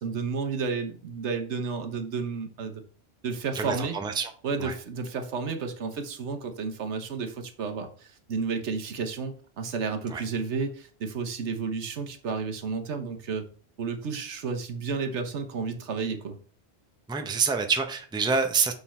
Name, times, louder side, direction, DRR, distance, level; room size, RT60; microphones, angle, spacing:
voice 1, 0.0-2.8 3.2-4.0 4.4-13.5 13.8-16.4, right 5 dB, 85° right, 7 dB, 1.2 m, -32 dB
voice 2, 3.5-4.3 4.6-4.7 10.1-10.2 17.1-18.7, right 5 dB, 5° right, 6 dB, 0.5 m, -27 dB
6.8 x 3.9 x 4.3 m, 0.43 s
omnidirectional pair, 1.1 m